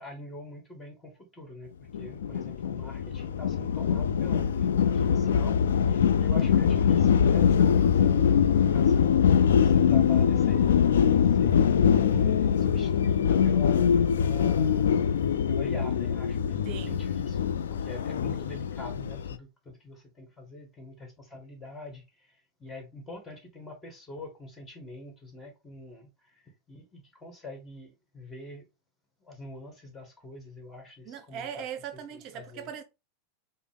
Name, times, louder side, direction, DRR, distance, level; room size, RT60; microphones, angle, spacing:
voice 1, 0.0-10.8 11.2-15.0 15.5-26.4 26.7-28.7 29.2-31.6 32.1-32.7, left 1 dB, 20° left, 1.7 m, -44 dB
sound 1, 1.9-19.3, left 7 dB, 85° left, 0.4 m, -23 dB
voice 2, 16.6-17.0 31.1-32.8, right 9 dB, 50° right, 0.5 m, -39 dB
5.0 x 2.1 x 3.6 m
hypercardioid pair, 105°, 0 cm